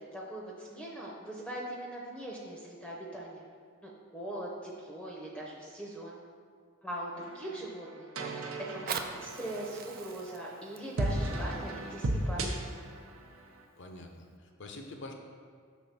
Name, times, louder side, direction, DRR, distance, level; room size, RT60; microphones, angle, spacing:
voice 1, 0.0-3.4 3.8-6.2 6.8-8.1 8.7-12.5, right 1 dB, 5° left, -4 dB, 0.7 m, -41 dB
sound 1, 7.1-13.6, right 1 dB, 70° right, 0.7 m, -36 dB
Fire, 8.6-13.6 14.2-14.3, right 6 dB, 45° right, 0.4 m, -43 dB
voice 2, 13.7-15.1, left 2 dB, 55° left, 3 dB, 0.7 m, -46 dB
6.1 x 3.6 x 5.7 m, 2.1 s
head